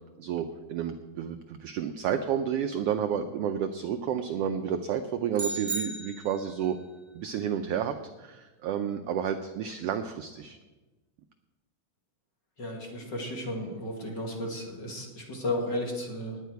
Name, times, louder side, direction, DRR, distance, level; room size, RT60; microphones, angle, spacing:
voice 1, 0.2-6.8 7.1-10.6, right 8 dB, 85° right, 8 dB, 1.3 m, -31 dB
sound 1, 5.3-6.7, right 3 dB, 40° right, 1.2 m, -35 dB
voice 2, 12.6-16.4, left 1 dB, 40° left, -1 dB, 2.4 m, -34 dB
18.5 x 9.3 x 4.6 m, 1.2 s
omnidirectional pair, 3.4 m